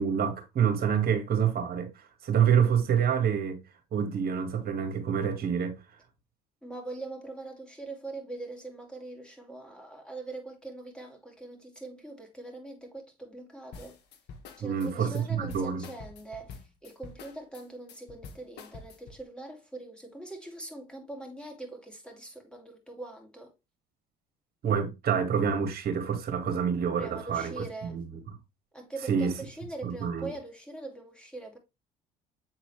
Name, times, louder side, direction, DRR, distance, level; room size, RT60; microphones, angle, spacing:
voice 1, 0.0-3.6 3.9-5.8 14.6-15.8 24.6-27.6 27.9-28.0 29.1-29.4 29.8-30.3, right 7 dB, 50° right, 2.0 m, -27 dB
voice 2, 6.6-14.0 14.6-23.5 26.9-28.0 28.7-31.6, right 2 dB, 5° left, 2.9 m, -42 dB
sound 1, 13.7-19.2, left 5 dB, 60° left, 1.2 m, -47 dB
7.8 x 4.0 x 3.2 m
hypercardioid pair, 60°, 19 cm